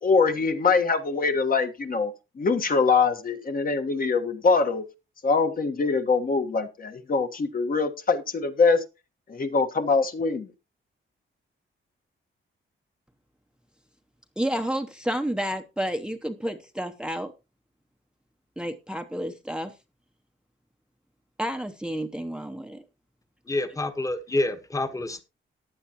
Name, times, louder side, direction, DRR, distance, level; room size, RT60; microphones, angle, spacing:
voice 1, 0.0-4.8 5.2-8.8 9.3-10.5, left 4 dB, 45° left, 1.4 m, -23 dB
voice 2, 14.4-17.3 18.6-19.7 21.4-22.8, equal, 5° right, 0.8 m, -30 dB
voice 3, 23.5-25.2, left 2 dB, 15° left, 1.2 m, -27 dB
15.0 x 10.5 x 2.9 m
wide cardioid pair, 150°, 21 cm